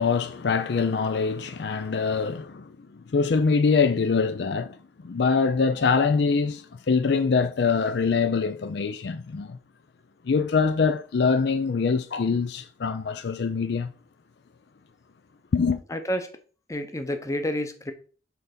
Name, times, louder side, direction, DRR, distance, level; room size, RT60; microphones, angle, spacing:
voice 1, 0.0-9.6 10.2-13.9 15.5-15.8, left 5 dB, 60° left, 0.4 m, -24 dB
voice 2, 15.9-16.3 16.7-17.9, equal, 15° left, 0.8 m, -29 dB
5.7 x 3.9 x 5.9 m
head